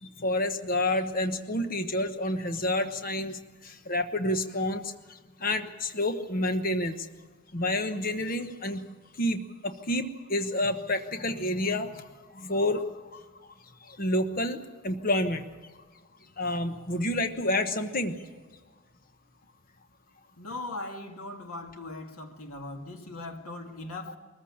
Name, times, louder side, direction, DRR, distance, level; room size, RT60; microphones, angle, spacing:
voice 1, 0.0-7.1 7.5-8.8 9.1-13.5 13.8-15.7 16.4-18.2, left 1 dB, 40° left, 1.2 m, -29 dB
voice 2, 20.4-24.2, left 2 dB, 90° left, 2.3 m, -39 dB
22.5 x 14.5 x 8.7 m
head